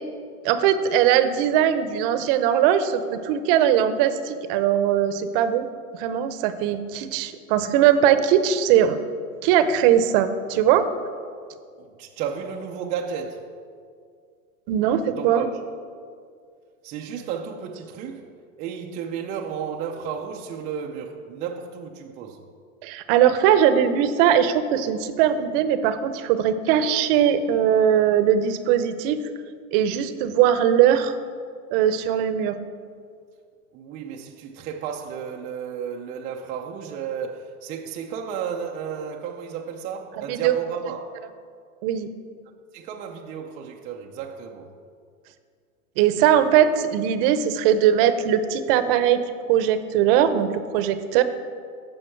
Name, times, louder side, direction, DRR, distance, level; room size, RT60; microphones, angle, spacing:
voice 1, 0.4-5.7 6.0-9.0 9.4-10.9 14.7-15.4 22.8-29.2 29.7-31.2 31.7-32.6 40.3-40.5 41.8-42.1 46.0-49.2 49.5-51.2, right 9 dB, 40° right, 0.7 m, -20 dB
voice 2, 11.8-13.5 15.1-15.6 16.8-18.3 18.6-22.5 33.7-41.1 42.7-44.7, right 7 dB, 20° right, 0.4 m, -33 dB
14.0 x 5.6 x 4.5 m
hypercardioid pair, 120°, 43 cm